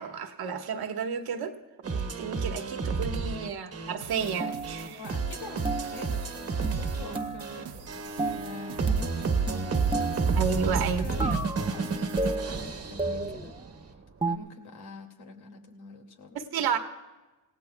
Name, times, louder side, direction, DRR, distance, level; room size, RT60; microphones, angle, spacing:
voice 1, 0.0-1.6 1.9-5.0 10.4-11.1 16.3-16.8, right 6 dB, 70° right, 5 dB, 1.4 m, -31 dB
sound 1, 1.8-13.8, right 4 dB, 40° right, 1.3 m, -31 dB
sound 2, 4.0-12.4, right 8 dB, 90° right, 0.9 m, -46 dB
sound 3, 4.4-5.0 5.7-6.2 6.6-7.7 8.2-8.6 8.9-10.5 11.2-11.8 12.2-13.6 14.2-14.4, right 2 dB, 15° right, 0.8 m, -33 dB
voice 2, 4.9-9.6 10.0-13.5 14.2-16.4, left 3 dB, 80° left, 2 dB, 2.4 m, -45 dB
27.5 x 17.0 x 2.3 m, 1.1 s
cardioid pair, 130°, 38 cm